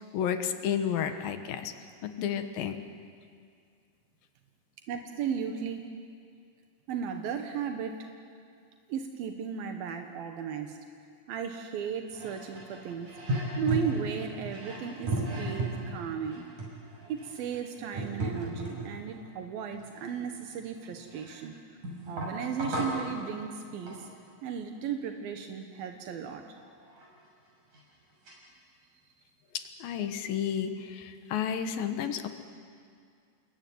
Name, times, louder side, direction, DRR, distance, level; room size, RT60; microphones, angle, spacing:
voice 1, 0.0-1.7 2.0-2.8 29.5-32.3, left 8 dB, 80° left, 8 dB, 3.0 m, -32 dB
voice 2, 4.9-5.9 6.9-8.1 8.9-10.8 11.3-13.1 13.6-16.5 17.1-21.6 22.1-24.1 24.4-26.4, right 7 dB, 85° right, 5 dB, 3.2 m, -35 dB
sound 1, 12.1-19.1 19.7-21.4 21.8-23.1 23.9-24.1 26.6-26.7 26.9-27.1 27.7-27.8 28.3-28.4, right 2 dB, 60° right, 7.8 m, -35 dB
28.5 x 21.5 x 9.3 m, 2.3 s
omnidirectional pair, 4.1 m